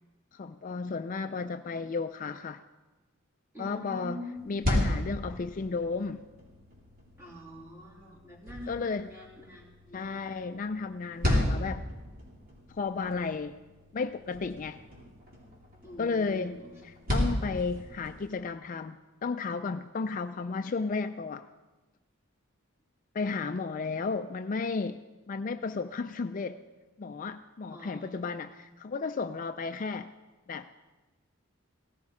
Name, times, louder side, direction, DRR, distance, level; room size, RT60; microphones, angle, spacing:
voice 1, 0.3-2.6 3.6-4.2 4.5-6.3 8.7-9.1 9.9-11.8 12.7-13.5 13.9-14.8 16.0-16.6 17.1-21.4 23.1-25.0 25.3-26.6 27.0-30.1 30.5-30.7, left 4 dB, 40° left, 9 dB, 0.4 m, -33 dB
voice 2, 3.5-4.4 7.2-10.3 15.8-16.8 27.7-28.5, equal, 15° right, -3 dB, 3.2 m, -45 dB
sound 1, 4.3-18.3, left 1 dB, 45° right, 3.3 m, -35 dB
17.0 x 15.0 x 4.9 m, 1.2 s
head